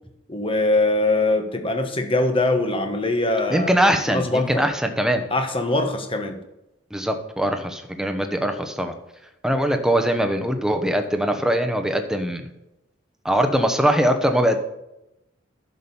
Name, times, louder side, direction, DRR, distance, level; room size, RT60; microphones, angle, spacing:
voice 1, 0.3-3.7 4.1-4.7 5.3-6.4, left 2 dB, 25° left, 5 dB, 1.2 m, -22 dB
voice 2, 3.5-5.2 6.9-8.9 9.4-12.4 13.2-14.6, equal, 5° right, 6 dB, 1.0 m, -21 dB
11.0 x 6.2 x 7.1 m, 0.91 s
head